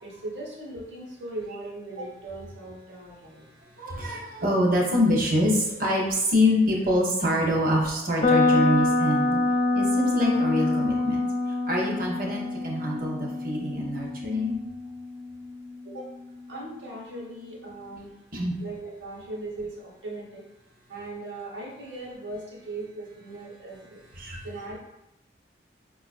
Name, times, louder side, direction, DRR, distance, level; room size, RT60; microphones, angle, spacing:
voice 1, 0.0-3.4 15.8-16.1 16.5-18.1 18.6-20.4 20.9-24.0 24.4-24.8, right 2 dB, 70° right, -4 dB, 1.0 m, -38 dB
voice 2, 3.8-9.4 9.7-11.2 11.7-14.6 18.3-18.5 24.2-24.4, left 1 dB, 45° right, -1 dB, 0.7 m, -25 dB
sound 1, 8.2-16.1, left 2 dB, 40° left, 0.5 m, -26 dB
4.6 x 2.4 x 2.4 m, 0.88 s
head